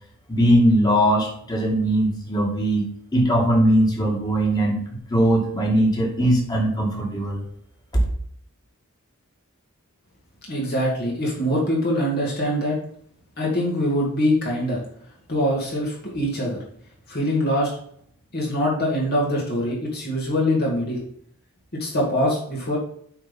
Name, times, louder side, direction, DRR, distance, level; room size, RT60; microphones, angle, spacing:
voice 1, 0.3-2.9 3.1-4.8 5.1-7.4 7.9-8.0, right 1 dB, 20° left, -1 dB, 2.3 m, -20 dB
voice 2, 10.5-12.8 13.4-14.8 15.3-16.6 17.1-17.7 18.3-21.0 21.7-22.8, equal, 45° left, -3 dB, 2.5 m, -23 dB
8.6 x 4.4 x 5.5 m, 0.64 s
head